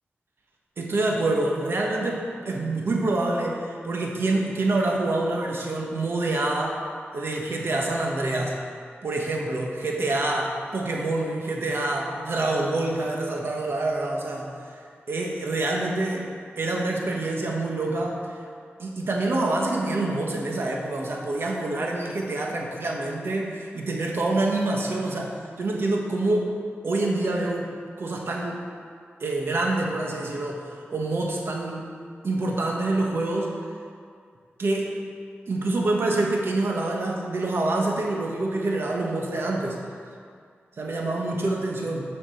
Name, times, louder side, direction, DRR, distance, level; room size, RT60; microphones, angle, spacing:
voice 1, 0.8-6.8 7.1-8.6 9.0-16.3 16.6-18.4 18.8-26.5 26.8-28.6 29.2-31.9 32.2-33.5 34.6-35.0 35.5-39.8 40.8-42.0, right 2 dB, 65° right, -1 dB, 1.3 m, -26 dB
7.2 x 6.9 x 6.9 m, 2.2 s
wide cardioid pair, 120°, 4 cm